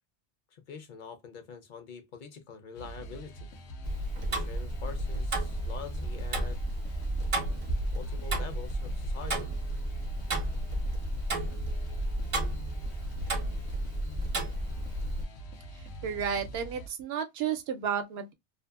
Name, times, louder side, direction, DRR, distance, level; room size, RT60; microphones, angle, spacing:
voice 1, 0.5-3.5 4.3-6.6 7.9-9.5, left 6 dB, 55° left, 0.6 m, -45 dB
sound 1, 2.7-16.9, right 1 dB, 90° left, 0.9 m, -45 dB
Tick-tock, 3.8-15.2, right 1 dB, 40° right, 0.5 m, -32 dB
voice 2, 15.7-18.3, right 8 dB, 70° right, 0.8 m, -32 dB
2.6 x 2.5 x 2.3 m
omnidirectional pair, 1.1 m